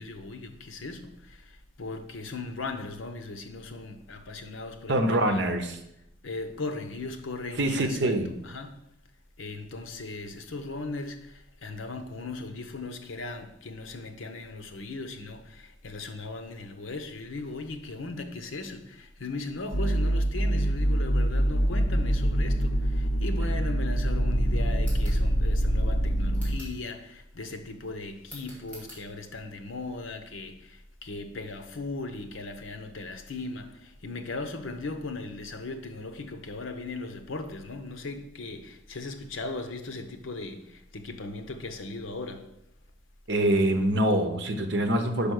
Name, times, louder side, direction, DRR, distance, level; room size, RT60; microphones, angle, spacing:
voice 1, 0.0-5.4 6.2-8.9 9.4-42.5, left 3 dB, 85° left, 0.9 m, -38 dB
voice 2, 4.9-5.8 7.6-8.3 43.3-45.3, right 1 dB, 60° right, 0.9 m, -25 dB
sound 1, 19.7-26.6, equal, 55° left, 0.8 m, -25 dB
sound 2, 24.8-25.2 26.3-26.8 28.2-29.0, equal, 5° left, 2.4 m, -47 dB
5.2 x 5.2 x 6.3 m
head